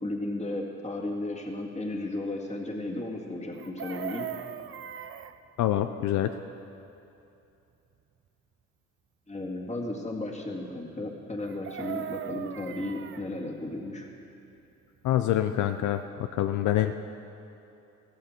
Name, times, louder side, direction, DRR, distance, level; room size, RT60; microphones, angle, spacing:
voice 1, 0.0-4.3 9.3-14.1, left 2 dB, 25° left, 0 dB, 2.0 m, -34 dB
Chicken rooster, 3.5-5.4 11.4-13.2 15.5-15.6 15.8-16.1, right 9 dB, 45° right, 0.6 m, -38 dB
voice 2, 5.6-6.3 15.0-16.9, left 12 dB, 75° left, 8 dB, 0.6 m, -26 dB
15.0 x 14.0 x 4.5 m, 2.8 s
cardioid pair, 90°, 30 cm